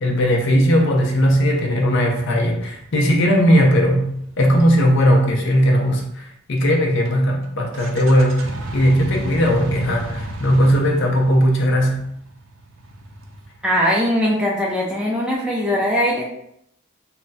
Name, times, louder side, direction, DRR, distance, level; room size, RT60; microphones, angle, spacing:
voice 1, 0.0-12.0, equal, 60° left, 1 dB, 0.5 m, -18 dB
sound 1, 0.5-6.1 7.0-7.1 7.4-7.5 7.7-13.9, right 2 dB, 60° right, 0.4 m, -36 dB
voice 2, 13.6-16.3, equal, 5° right, -4 dB, 0.4 m, -20 dB
2.2 x 2.1 x 3.8 m, 0.74 s
head